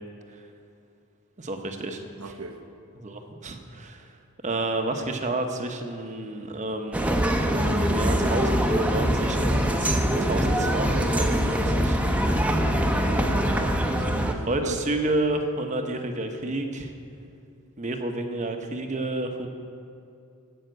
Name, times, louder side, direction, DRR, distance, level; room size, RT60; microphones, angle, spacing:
voice 1, 1.4-2.0 3.0-4.1 4.4-7.1 7.8-12.0 14.5-16.9 17.8-19.5, right 2 dB, 35° right, 5 dB, 0.9 m, -30 dB
voice 2, 2.2-2.6 12.7-13.5 13.9-15.0, right 3 dB, 90° right, 5 dB, 1.0 m, -38 dB
sound 1, 6.9-14.3, equal, 5° right, 0.7 m, -23 dB
15.5 x 5.8 x 7.9 m, 2.6 s
head